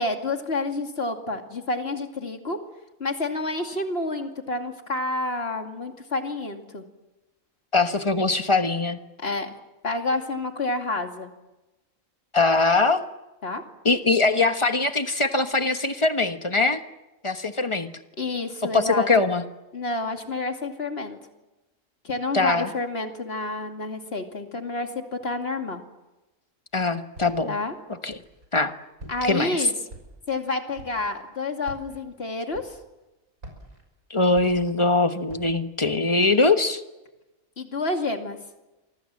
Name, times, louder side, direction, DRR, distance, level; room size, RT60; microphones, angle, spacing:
voice 1, 0.0-2.6 3.0-6.8 9.2-9.5 9.8-11.3 13.4-13.6 18.2-19.1 19.7-21.2 22.0-25.8 27.5-27.7 29.1-29.7 30.3-32.8 37.6-38.4, left 2 dB, 45° left, 5 dB, 2.6 m, -29 dB
voice 2, 7.7-9.0 12.3-13.0 13.8-16.8 17.2-17.9 18.6-19.4 22.3-22.7 26.7-27.5 27.9-28.2 28.5-28.7 29.2-29.7 34.1-36.8, left 3 dB, 20° left, 8 dB, 1.3 m, -22 dB
Walk footsteps, 27.1-27.6 28.1-28.6 29.0-29.5 29.9-30.4 30.7-31.1 31.6-32.0 32.5-33.0 33.4-34.9 35.3-35.7, right 1 dB, 90° right, 6.4 m, -45 dB
28.5 x 24.5 x 7.6 m, 1.0 s
omnidirectional pair, 1.4 m